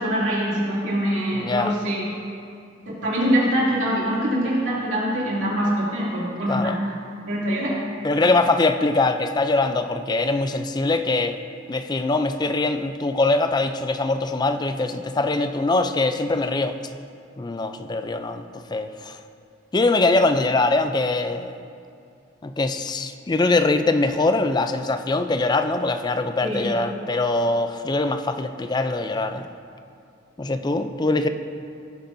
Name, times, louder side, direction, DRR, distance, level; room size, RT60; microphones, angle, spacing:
voice 1, 0.0-2.1 2.9-6.7 7.3-7.8 26.4-26.7, equal, 90° right, -7 dB, 2.6 m, -24 dB
voice 2, 1.3-1.8 6.5-6.8 8.0-11.4 11.7-16.8 17.4-19.2 19.7-21.6 22.4-29.5 30.4-31.3, left 2 dB, 20° left, 8 dB, 0.4 m, -22 dB
17.0 x 8.6 x 2.7 m, 2.4 s
head